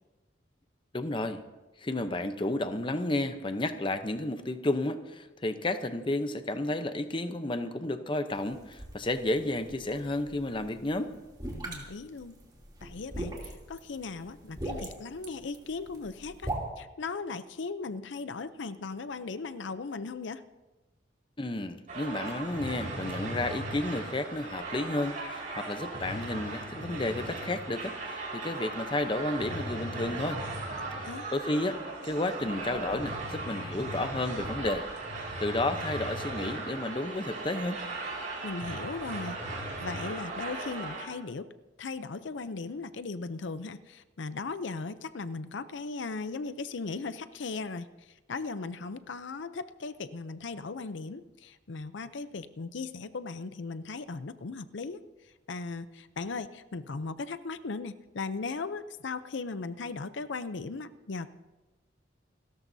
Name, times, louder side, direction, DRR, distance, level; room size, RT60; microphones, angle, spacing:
voice 1, 0.9-1.4 1.8-11.1 21.4-30.4 30.9-34.9 35.4-37.8, left 2 dB, 25° left, 9 dB, 0.7 m, -32 dB
sound 1, 8.3-16.6, right 1 dB, 25° right, 2.9 m, -42 dB
voice 2, 11.6-12.4 12.8-16.5 16.8-20.4 31.0-31.3 38.4-41.5 41.8-61.3, left 4 dB, 75° left, 12 dB, 0.6 m, -38 dB
sound 2, 21.9-41.1, right 2 dB, 45° right, 5.5 m, -37 dB
29.0 x 13.5 x 2.7 m, 1.1 s
head